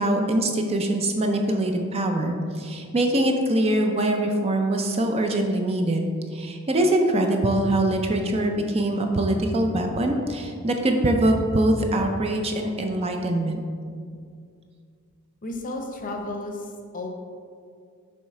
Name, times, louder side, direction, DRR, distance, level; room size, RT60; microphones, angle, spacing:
voice 1, 0.0-13.6, right 1 dB, 25° right, 3 dB, 0.4 m, -23 dB
voice 2, 15.4-17.1, left 2 dB, 35° left, 3 dB, 0.7 m, -33 dB
7.2 x 3.2 x 4.7 m, 2.2 s
head